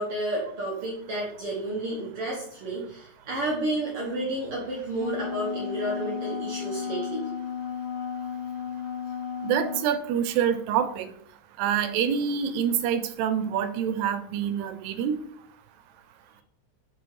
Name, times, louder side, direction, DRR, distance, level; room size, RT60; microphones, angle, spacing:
voice 1, 0.0-7.2, right 1 dB, 60° right, -3 dB, 1.7 m, -31 dB
Wind instrument woodwind instrument, 4.7-9.9, left 7 dB, 75° left, 2.4 m, -34 dB
voice 2, 9.4-11.1 11.6-15.2, right 8 dB, 90° right, 11 dB, 2.3 m, -26 dB
5.8 x 4.4 x 4.7 m, 0.66 s
omnidirectional pair, 3.8 m